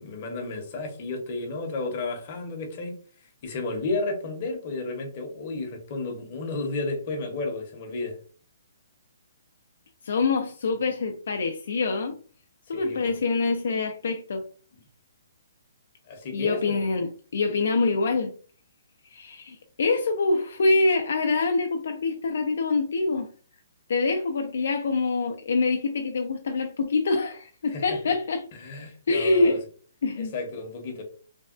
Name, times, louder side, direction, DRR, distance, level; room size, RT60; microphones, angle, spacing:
voice 1, 0.0-8.2 12.7-13.2 16.1-16.8 27.7-28.0 28.5-29.6 30.2-31.0, left 3 dB, 30° left, 0.8 m, -32 dB
voice 2, 10.0-12.2 12.7-14.4 16.3-18.3 19.0-23.3 23.9-28.4 29.1-29.6 30.0-30.3, left 3 dB, 60° left, 0.4 m, -25 dB
3.3 x 2.2 x 2.4 m
hypercardioid pair, 175°, 0 cm